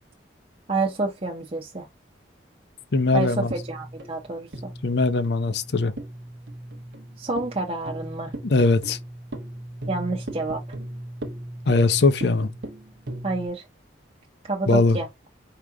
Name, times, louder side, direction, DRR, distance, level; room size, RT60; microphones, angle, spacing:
voice 1, 0.7-1.9 3.1-4.7 7.2-8.3 9.9-10.6 13.2-13.6 14.4-15.1, right 3 dB, 30° right, 0.8 m, -28 dB
voice 2, 2.9-3.5 4.8-5.9 8.4-9.0 11.7-12.5 14.7-15.0, left 3 dB, 60° left, 0.6 m, -20 dB
sound 1, 3.5-13.5, right 1 dB, 65° right, 0.9 m, -37 dB
4.9 x 2.9 x 3.5 m
head